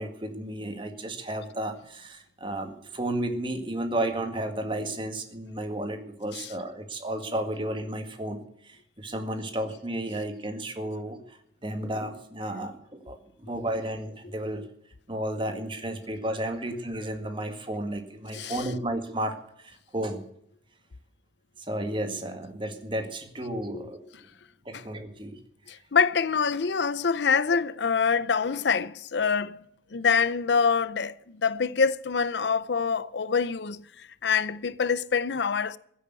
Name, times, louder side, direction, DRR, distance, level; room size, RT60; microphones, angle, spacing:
voice 1, 0.0-14.6 15.1-20.2 21.6-24.0 24.7-25.4, right 1 dB, 30° right, 1.9 m, -33 dB
voice 2, 18.3-18.7 23.7-23.8 24.7-24.8 25.7-29.6 29.9-33.8 34.2-35.8, left 5 dB, 80° left, 0.7 m, -25 dB
16.0 x 8.6 x 8.2 m
head